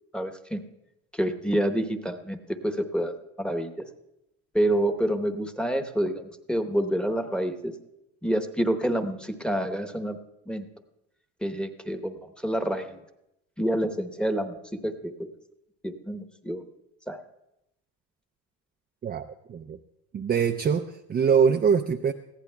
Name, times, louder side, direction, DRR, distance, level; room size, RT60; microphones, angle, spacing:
voice 1, 0.1-0.6 1.1-3.9 4.5-6.2 6.5-7.7 8.2-10.2 10.5-10.7 11.4-13.0 13.6-15.3 15.8-16.6 17.1-17.2, right 1 dB, 5° left, 7 dB, 1.0 m, -28 dB
voice 2, 19.0-19.8 20.1-22.1, right 6 dB, 25° right, 6 dB, 0.4 m, -24 dB
19.5 x 15.0 x 2.3 m, 0.87 s
cardioid pair, 100°, 35 cm